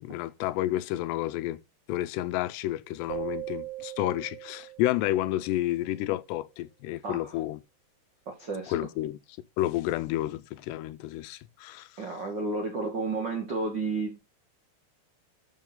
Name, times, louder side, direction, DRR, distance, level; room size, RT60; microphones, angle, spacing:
voice 1, 0.0-1.6 1.9-7.6 8.7-9.2 9.6-11.9, left 15 dB, 85° left, 2.8 m, -30 dB
sound 1, 3.1-5.7, right 17 dB, 90° right, 2.0 m, -39 dB
voice 2, 7.0-7.4 8.3-8.7 12.0-14.2, right 3 dB, 70° right, 1.0 m, -32 dB
12.5 x 5.1 x 3.8 m
omnidirectional pair, 4.8 m